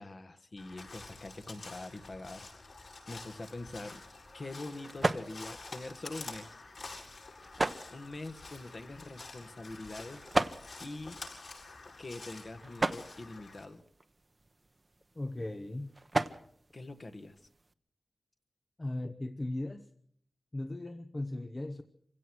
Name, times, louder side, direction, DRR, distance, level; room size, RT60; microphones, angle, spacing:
voice 1, 0.0-2.5 3.1-4.0 4.3-6.6 7.9-10.3 10.8-11.2 12.0-13.8 16.7-17.3, left 2 dB, 40° left, 9 dB, 1.6 m, -44 dB
Crow, 0.6-13.7, left 3 dB, 60° left, 7.5 m, -48 dB
sound 1, 3.4-17.7, right 2 dB, 30° right, 0.9 m, -39 dB
voice 2, 15.2-16.0 18.8-19.9 20.5-21.8, left 1 dB, 25° left, 8 dB, 0.9 m, -37 dB
26.5 x 17.0 x 6.2 m, 0.64 s
wide cardioid pair, 130°, 0 cm